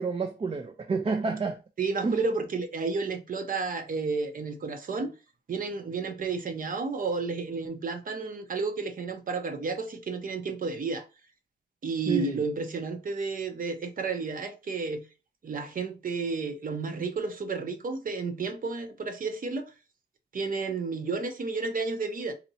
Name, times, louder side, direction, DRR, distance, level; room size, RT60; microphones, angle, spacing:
voice 1, 0.0-1.6 2.0-2.2 12.1-12.4, right 4 dB, 35° right, 0.5 m, -29 dB
voice 2, 1.8-5.1 5.5-11.0 11.8-15.0 15.4-19.7 20.3-22.3, right 4 dB, 50° right, 0.8 m, -31 dB
4.2 x 2.9 x 2.7 m
wide cardioid pair, 130°, 18 cm